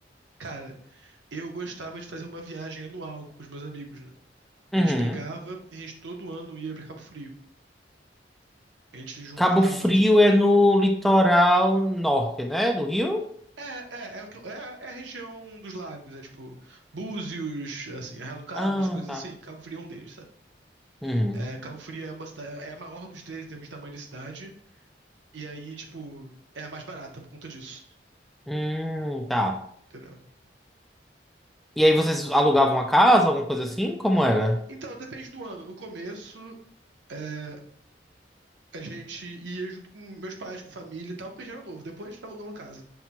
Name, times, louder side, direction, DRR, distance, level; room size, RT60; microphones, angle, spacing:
voice 1, 0.4-4.1 4.7-7.3 8.9-10.0 13.6-20.2 21.0-24.5 25.3-28.0 29.9-30.2 34.2-34.4 34.7-36.5 37.1-37.6 38.7-42.8, right 3 dB, 85° right, 2 dB, 0.8 m, -39 dB
voice 2, 4.7-5.2 9.4-13.2 18.6-19.2 21.0-21.4 28.5-29.6 31.8-34.6, equal, ahead, 3 dB, 0.3 m, -21 dB
5.7 x 2.2 x 2.9 m, 0.63 s
head